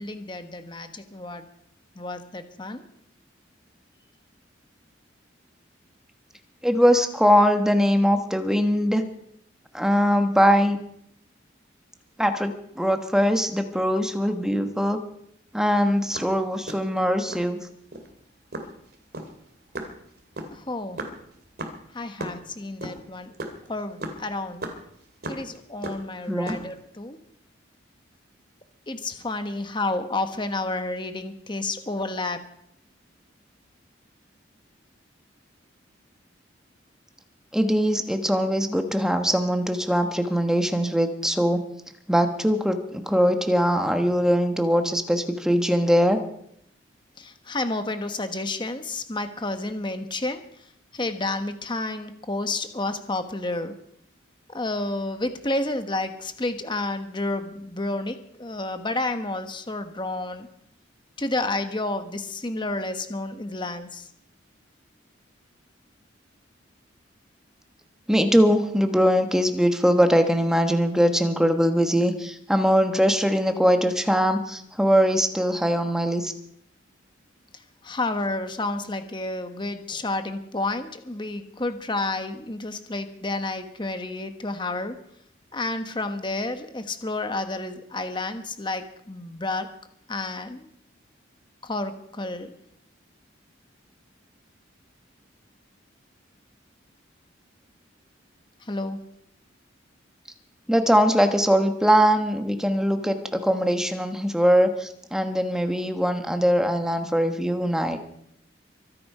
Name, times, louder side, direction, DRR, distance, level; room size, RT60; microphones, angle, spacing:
voice 1, 0.0-1.5 1.9-2.9 20.5-21.0 21.9-23.4 23.7-24.6 25.2-27.2 28.9-32.4 47.2-50.7 50.9-53.7 54.5-60.5 61.2-64.1 77.5-85.0 85.5-89.7 90.1-90.7 91.6-92.5 98.6-99.0, left 2 dB, 25° left, 8 dB, 1.2 m, -30 dB
voice 2, 6.6-9.0 9.7-10.8 12.2-15.0 15.5-17.6 26.3-26.6 37.5-41.6 42.1-46.2 68.1-76.3 100.7-108.0, equal, 5° right, 6 dB, 1.2 m, -21 dB
stamping on the street, 15.9-17.5 17.9-18.1 18.5-22.4 22.6-25.6 25.8-26.8, right 2 dB, 50° right, 2.5 m, -36 dB
24.0 x 8.6 x 5.5 m, 0.72 s
head